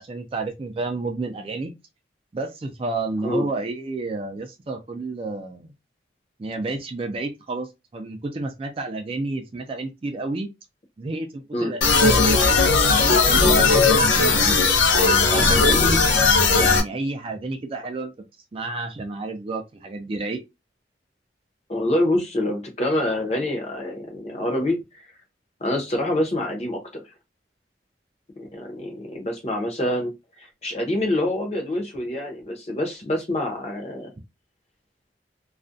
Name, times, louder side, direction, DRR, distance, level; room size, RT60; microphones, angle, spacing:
voice 1, 0.0-1.7 2.3-5.7 6.4-10.5 11.0-12.6 12.9-16.0 16.5-18.1 18.5-20.4, right 2 dB, 30° right, 0.3 m, -30 dB
sound 1, 11.8-16.8, left 4 dB, 85° left, 0.5 m, -17 dB
voice 2, 21.7-24.8 25.6-27.0 28.4-30.1 30.4-34.1, left 1 dB, 35° left, 0.6 m, -26 dB
2.4 x 2.1 x 2.5 m
head